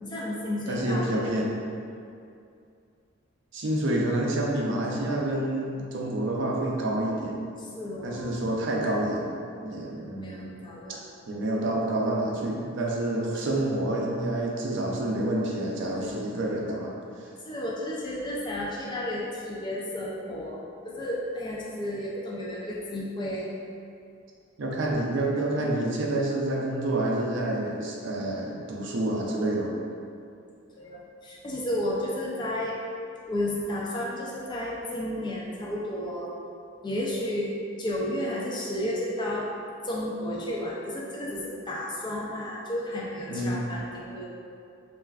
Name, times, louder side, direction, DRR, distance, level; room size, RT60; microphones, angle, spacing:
voice 1, 0.0-1.3 7.6-8.3 10.2-11.0 15.9-16.2 17.5-23.5 30.7-32.8 33.3-36.3 36.8-37.5 37.8-39.5 39.8-44.3, left 1 dB, 25° left, -5 dB, 0.4 m, -32 dB
voice 2, 0.7-1.6 3.5-7.4 8.0-9.3 9.6-10.6 11.3-16.9 24.6-29.7 43.3-43.6, right 1 dB, 65° right, -2 dB, 0.4 m, -28 dB
3.2 x 2.4 x 2.3 m, 2.4 s
head